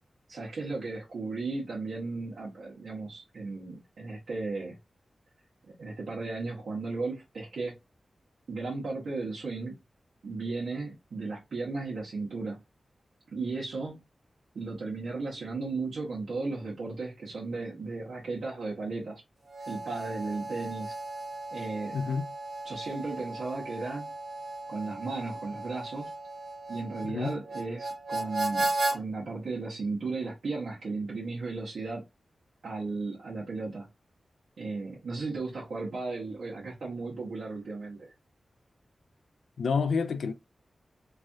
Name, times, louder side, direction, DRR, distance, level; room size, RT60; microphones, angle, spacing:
voice 1, 0.3-4.8 5.6-7.7 8.5-9.8 10.2-12.6 13.3-14.0 14.5-19.2 19.7-21.0 21.5-22.0 22.6-24.1 24.7-26.1 26.7-32.0 32.6-33.9 34.6-38.1, right 3 dB, 85° right, 1.0 m, -35 dB
Harmonica, 19.4-29.0, right 2 dB, 60° right, 1.2 m, -35 dB
voice 2, 21.9-22.3 27.0-27.4 39.6-40.3, left 5 dB, 85° left, 0.4 m, -29 dB
3.2 x 2.4 x 2.6 m
wide cardioid pair, 95°, 0 cm